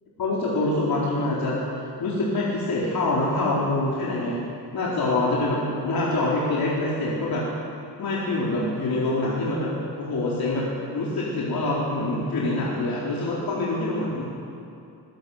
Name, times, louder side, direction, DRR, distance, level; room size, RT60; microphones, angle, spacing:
voice 1, 0.2-4.4 4.7-7.4 8.0-9.7 10.0-14.2, left 2 dB, 60° left, -6 dB, 4.2 m, -25 dB
24.0 x 19.0 x 8.0 m, 2.5 s
wide cardioid pair, 175°, 41 cm